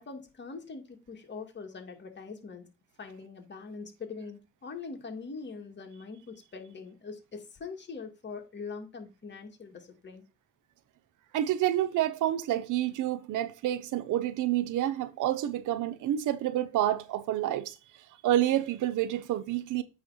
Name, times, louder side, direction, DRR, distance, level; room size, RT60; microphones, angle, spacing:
voice 1, 0.0-2.7 3.0-10.3, left 4 dB, 35° left, 2.1 m, -43 dB
voice 2, 11.3-17.7 18.2-19.8, right 12 dB, 80° right, 0.8 m, -28 dB
8.6 x 3.3 x 5.6 m
cardioid pair, 90°, 30 cm